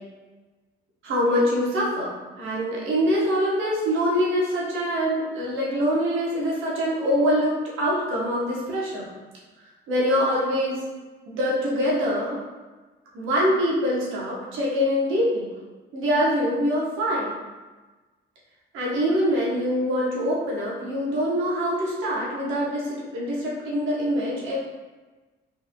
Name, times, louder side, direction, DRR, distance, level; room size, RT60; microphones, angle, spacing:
voice 1, 1.0-2.1 2.4-7.5 7.8-9.1 9.9-10.8 11.3-12.4 13.1-15.5 15.9-17.3 18.7-24.6, equal, 85° right, -5 dB, 1.0 m, -24 dB
3.5 x 3.3 x 2.2 m, 1.2 s
cardioid pair, 90°, 20 cm